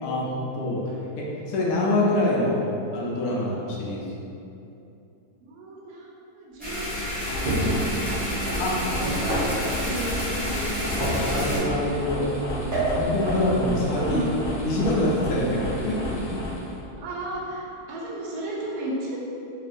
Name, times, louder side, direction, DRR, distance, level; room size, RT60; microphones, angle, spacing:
voice 1, 0.0-2.6 2.9-4.0 8.6-8.8 11.0-14.3 14.6-16.2, left 1 dB, 75° left, -5 dB, 1.1 m, -26 dB
voice 2, 5.4-7.0 8.4-11.8 13.5-14.3 17.0-19.2, right 2 dB, 85° right, -5 dB, 1.2 m, -35 dB
sound 1, 6.6-11.6, equal, 10° right, 0.5 m, -30 dB
sound 2, 6.9-16.8, equal, 55° left, 0.8 m, -32 dB
sound 3, 7.4-7.9 9.0-9.6 11.0-11.7 12.7-13.5, right 1 dB, 55° right, 1.1 m, -26 dB
3.0 x 2.7 x 2.5 m, 2.8 s
omnidirectional pair, 1.7 m